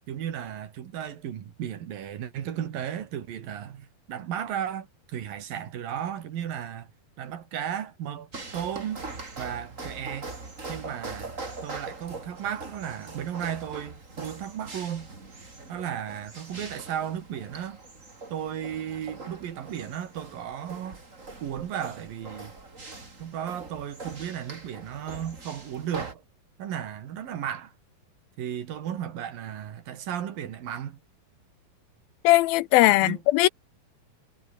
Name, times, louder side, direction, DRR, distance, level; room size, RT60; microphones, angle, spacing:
voice 1, 0.1-6.9 7.2-9.0 9.4-10.3 10.7-11.3 11.6-15.1 15.7-17.8 18.3-21.0 21.4-22.5 23.2-26.2 26.6-27.7 28.4-31.0 32.9-33.2, right 9 dB, 70° right, 3.7 m, -34 dB
sound 1, 8.3-26.1, right 3 dB, 20° right, 3.6 m, -42 dB
voice 2, 32.2-33.5, left 18 dB, 85° left, 2.6 m, -19 dB
omnidirectional pair, 4.2 m